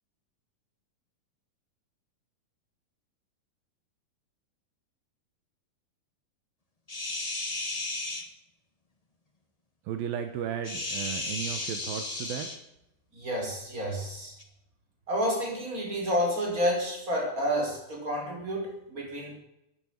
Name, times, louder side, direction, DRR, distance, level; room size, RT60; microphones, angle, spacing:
sound 1, 6.9-8.2 10.6-12.6 14.4-14.5, left 2 dB, 85° left, 0.3 m, -34 dB
voice 1, 9.9-12.5, right 9 dB, 75° right, 7 dB, 2.9 m, -34 dB
voice 2, 13.1-14.3 15.1-19.3, equal, 20° right, -1 dB, 5.6 m, -30 dB
16.0 x 9.9 x 8.9 m, 0.84 s
omnidirectional pair, 4.3 m